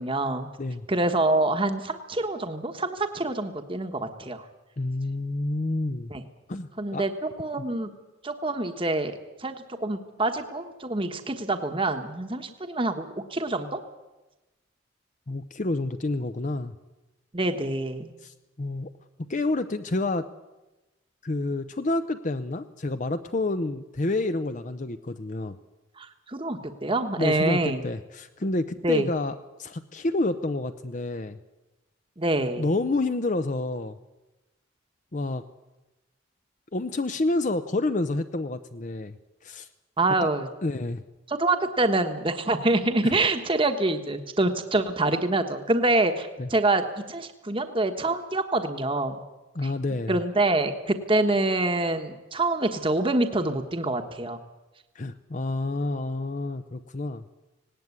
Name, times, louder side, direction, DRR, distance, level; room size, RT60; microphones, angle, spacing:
voice 1, 0.0-0.5 0.9-4.4 6.1-6.2 6.8-7.1 7.4-7.9 8.2-9.1 9.4-13.8 17.3-18.1 26.0-27.8 28.8-29.1 32.2-32.6 40.0-40.5 41.3-49.2 50.1-54.4, right 2 dB, 25° right, 7 dB, 1.2 m, -26 dB
voice 2, 4.8-6.1 6.5-7.0 15.3-16.7 18.2-18.9 19.3-20.3 21.2-25.6 27.2-31.4 32.6-34.0 35.1-35.4 36.7-39.1 39.4-39.7 40.2-40.3 40.6-41.0 43.0-43.2 46.4-46.5 49.5-50.2 54.9-57.2, left 2 dB, 40° left, 10 dB, 0.7 m, -29 dB
18.0 x 18.0 x 9.6 m, 1.1 s
head